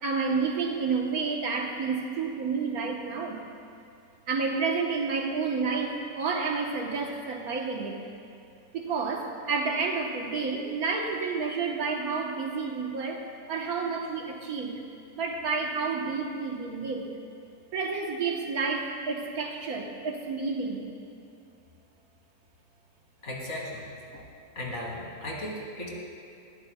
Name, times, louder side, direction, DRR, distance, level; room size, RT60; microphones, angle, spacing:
voice 1, 0.0-3.5 4.3-8.0 8.7-14.8 15.1-17.1 17.7-20.9, right 4 dB, 65° right, 1 dB, 1.5 m, -30 dB
voice 2, 23.2-23.8 24.1-24.2 24.5-25.9, left 1 dB, 45° left, -3 dB, 2.4 m, -36 dB
19.5 x 14.0 x 2.2 m, 2.5 s
omnidirectional pair, 1.7 m